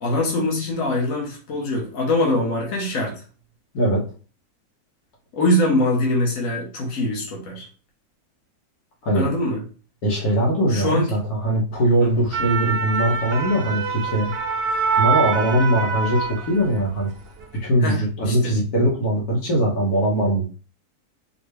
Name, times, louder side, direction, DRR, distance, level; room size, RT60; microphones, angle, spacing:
voice 1, 0.0-3.2 5.3-7.7 9.1-9.6 10.7-11.1 12.0-12.1 17.8-18.0 18.2-18.5, left 1 dB, 65° left, -2 dB, 1.4 m, -23 dB
voice 2, 10.0-14.3 15.0-17.1 17.6-20.5, right 1 dB, 85° left, -2 dB, 1.7 m, -21 dB
sound 1, 12.1-16.8 17.2-17.4, right 5 dB, 55° right, 0.7 m, -25 dB
4.9 x 2.2 x 3.2 m, 0.38 s
omnidirectional pair, 1.6 m